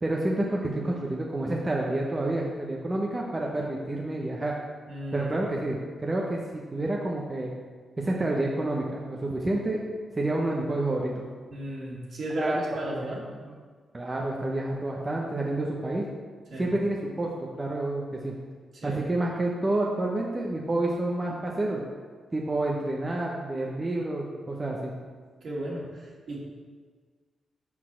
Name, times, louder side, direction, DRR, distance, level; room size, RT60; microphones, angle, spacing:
voice 1, 0.0-4.5 5.1-7.5 8.0-9.8 10.1-11.2 12.4-12.6 12.8-13.3 13.9-16.0 16.6-18.3 18.8-21.8 22.3-24.9, right 2 dB, 30° right, -2 dB, 1.0 m, -29 dB
voice 2, 4.9-5.3 11.5-13.2 16.5-16.7 18.8-19.0 25.4-26.4, right 1 dB, 65° right, -5 dB, 2.3 m, -34 dB
6.0 x 4.5 x 6.3 m, 1.5 s
supercardioid pair, 55°, 0 cm